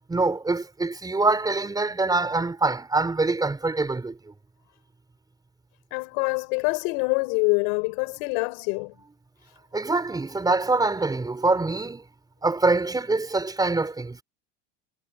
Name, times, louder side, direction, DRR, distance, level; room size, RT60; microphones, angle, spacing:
voice 1, 0.1-4.2 9.7-12.0 12.4-14.2, right 3 dB, 10° right, 5.7 m, -24 dB
voice 2, 5.9-8.9, left 33 dB, 70° left, 6.7 m, -25 dB
supercardioid pair, 130°, 33 cm